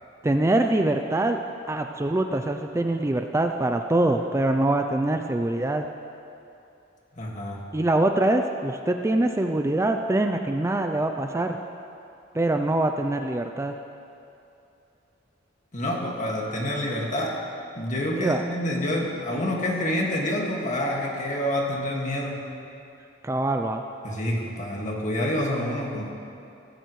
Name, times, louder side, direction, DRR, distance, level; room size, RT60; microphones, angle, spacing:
voice 1, 0.2-1.4 1.7-5.9 7.7-11.6 12.3-13.8 18.2-18.4 23.2-23.8, right 1 dB, 15° right, 5 dB, 0.4 m, -24 dB
voice 2, 7.2-7.6 15.7-17.4 17.7-22.4 24.0-26.1, left 1 dB, 40° left, -1 dB, 1.9 m, -27 dB
16.5 x 16.0 x 3.2 m, 2.7 s
head